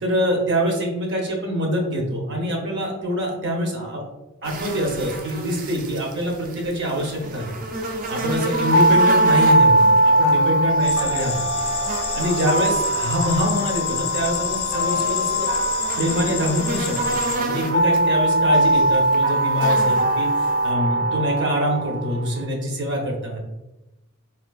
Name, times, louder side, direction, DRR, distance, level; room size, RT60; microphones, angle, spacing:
voice 1, 0.0-4.0 4.4-7.6 8.1-11.5 12.1-15.5 16.0-23.4, equal, 60° right, 0 dB, 0.7 m, -25 dB
sound 1, 4.4-20.7, right 2 dB, 40° right, 0.3 m, -33 dB
sound 2, 8.5-22.4, right 1 dB, 85° right, 1.1 m, -21 dB
sound 3, 10.8-17.4, left 7 dB, 75° left, 0.4 m, -30 dB
3.6 x 2.4 x 2.3 m, 0.98 s
head